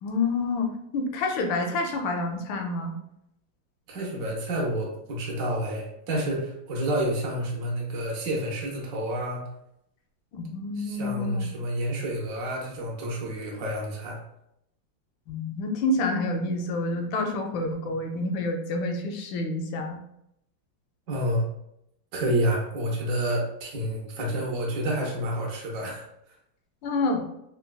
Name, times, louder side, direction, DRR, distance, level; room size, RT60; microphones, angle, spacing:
voice 1, 0.0-2.9 10.3-11.5 15.3-20.0 26.8-27.2, left 2 dB, 75° left, 3 dB, 1.3 m, -28 dB
voice 2, 3.9-9.4 10.8-14.2 21.1-21.4 22.1-26.0, right 1 dB, 70° right, -2 dB, 0.8 m, -29 dB
3.8 x 2.2 x 2.3 m, 0.78 s
omnidirectional pair, 2.1 m